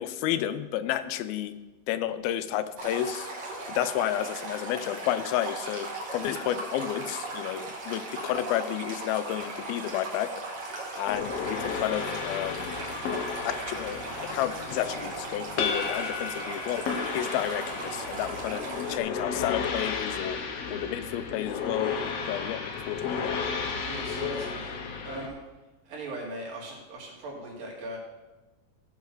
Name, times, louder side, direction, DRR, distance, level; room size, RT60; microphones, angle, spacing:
voice 1, 0.0-1.5 1.9-3.3 3.7-10.3 11.0-12.7 13.1-16.8 17.1-18.6 18.9-20.4 20.7-21.9 22.3-23.2, left 12 dB, 90° left, 12 dB, 2.5 m, -31 dB
Stream, 2.8-19.0, right 2 dB, 55° right, 3.0 m, -38 dB
sound 1, 11.1-25.3, left 5 dB, 75° left, 1.5 m, -33 dB
voice 2, 23.9-24.7 25.0-25.4 25.9-28.0, right 2 dB, 70° right, -2 dB, 4.0 m, -39 dB
15.5 x 6.5 x 4.8 m, 1.1 s
omnidirectional pair, 4.2 m